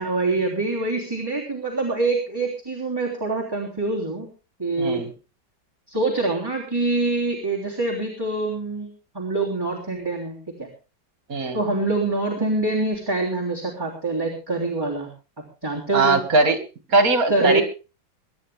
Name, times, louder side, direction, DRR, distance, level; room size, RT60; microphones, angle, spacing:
voice 1, 0.0-4.3 4.6-5.0 5.9-10.7 11.5-15.1 15.6-16.2 17.3-17.6, right 2 dB, 10° right, -3 dB, 3.3 m, -25 dB
voice 2, 4.8-5.1 11.3-11.6 15.9-16.6 16.9-17.6, right 3 dB, 50° right, 7 dB, 2.6 m, -20 dB
23.0 x 11.5 x 3.5 m, 0.32 s
omnidirectional pair, 2.0 m